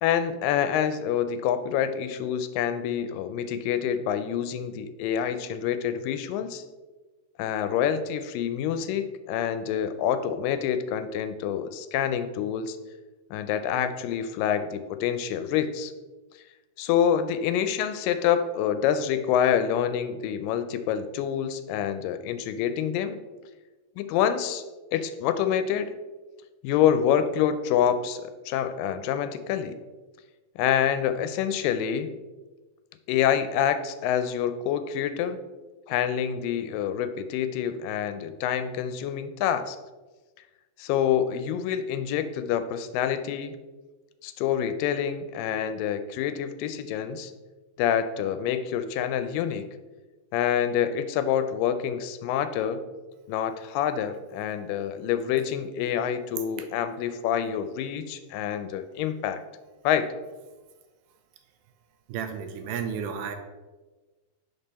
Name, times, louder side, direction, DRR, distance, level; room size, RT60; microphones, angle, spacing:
voice 1, 0.0-6.6 7.4-12.8 13.3-15.9 16.8-23.2 24.0-24.6 24.9-25.9 26.6-29.8 30.6-32.1 33.1-35.4 35.9-39.8 40.8-43.6 44.2-47.3 47.8-49.7 50.3-52.8 53.3-59.4 59.8-60.1, left 9 dB, 85° left, 10 dB, 2.2 m, -27 dB
voice 2, 62.1-63.4, right 7 dB, 80° right, 6 dB, 2.2 m, -32 dB
5.5 x 5.4 x 4.1 m, 1.2 s
omnidirectional pair, 3.9 m